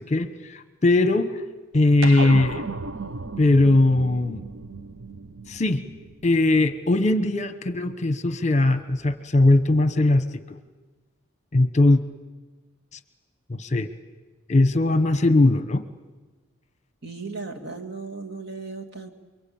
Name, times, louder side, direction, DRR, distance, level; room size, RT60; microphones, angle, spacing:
voice 1, 0.0-1.4 1.7-2.6 3.4-4.4 5.5-5.8 6.2-10.3 11.5-12.0 13.5-13.9 14.5-15.8, left 2 dB, 35° left, 11 dB, 1.1 m, -20 dB
sound 1, 2.0-6.7, right 3 dB, 70° right, 0.8 m, -34 dB
voice 2, 17.0-19.1, right 4 dB, 55° right, 3 dB, 2.6 m, -36 dB
29.0 x 23.0 x 8.8 m, 1.2 s
head